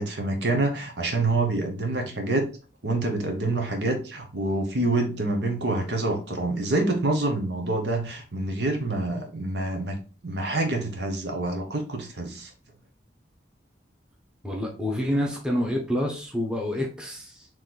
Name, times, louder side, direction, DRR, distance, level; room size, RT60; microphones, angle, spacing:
voice 1, 0.0-2.5 2.8-12.5, right 2 dB, 70° right, 3 dB, 1.1 m, -27 dB
voice 2, 14.4-17.5, left 1 dB, 5° right, -1 dB, 0.9 m, -28 dB
4.3 x 3.1 x 3.8 m, 0.36 s
head